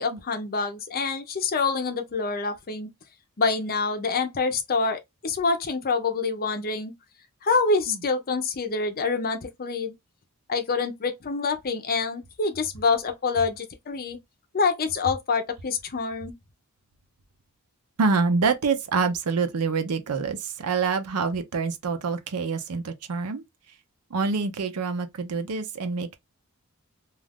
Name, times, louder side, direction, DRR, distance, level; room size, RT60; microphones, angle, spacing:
voice 1, 0.0-2.9 3.4-6.9 7.4-9.9 10.5-14.2 14.5-16.3, left 4 dB, 45° left, 0.6 m, -26 dB
voice 2, 18.0-23.4 24.1-26.2, right 4 dB, 75° right, 0.6 m, -26 dB
2.4 x 2.4 x 3.4 m
head